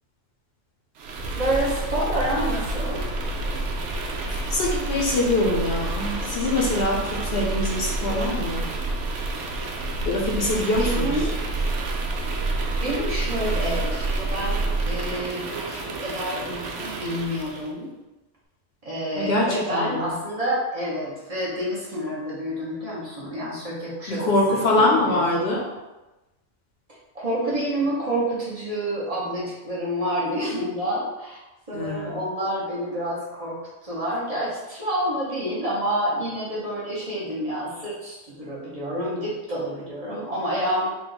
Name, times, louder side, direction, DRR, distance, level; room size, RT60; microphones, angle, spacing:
sound 1, 1.0-17.7, right 2 dB, 85° right, 0.9 m, -28 dB
voice 1, 1.3-3.1 10.6-11.5 12.8-17.9 18.8-25.5 27.1-31.4 31.7-40.9, right 1 dB, 35° right, -8 dB, 1.2 m, -28 dB
voice 2, 4.5-8.7 10.0-11.2 19.2-20.1 24.1-25.6 31.7-32.2, left 2 dB, 65° left, -2 dB, 0.9 m, -24 dB
3.8 x 2.4 x 3.9 m, 1.1 s
omnidirectional pair, 1.2 m